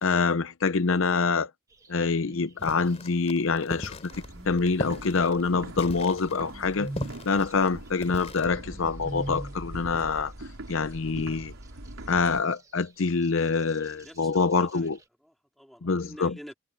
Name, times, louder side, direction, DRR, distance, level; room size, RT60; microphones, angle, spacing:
voice 1, 0.0-1.5 1.9-6.9 7.3-11.5 12.1-15.0 15.8-16.4, left 4 dB, 65° left, 0.6 m, -26 dB
sound 1, 1.7-3.2 4.2-5.9 6.2-9.7 10.0-10.1 10.7-15.0, right 1 dB, 15° right, 1.2 m, -44 dB
sound 2, 2.6-8.5, left 1 dB, 30° left, 3.1 m, -38 dB
sound 3, 4.1-12.4, right 1 dB, 85° right, 3.7 m, -42 dB
voice 2, 13.9-14.3 14.6-14.9 15.2-16.5, equal, ahead, 3.7 m, -47 dB
head